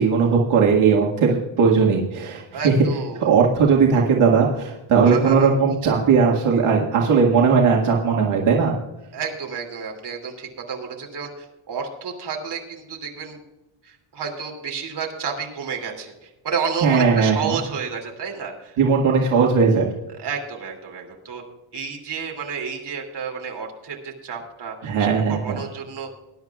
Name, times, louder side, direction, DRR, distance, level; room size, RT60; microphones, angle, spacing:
voice 1, 0.0-2.7 3.2-8.7 16.8-17.6 18.8-19.8 24.8-25.6, right 5 dB, 80° right, -2 dB, 1.9 m, -18 dB
voice 2, 2.5-3.3 5.0-5.6 9.1-13.4 13.8-18.8 20.2-21.4 21.7-26.1, right 6 dB, 55° right, 1 dB, 2.9 m, -31 dB
20.5 x 11.0 x 2.4 m, 1.0 s
wide cardioid pair, 160°, 49 cm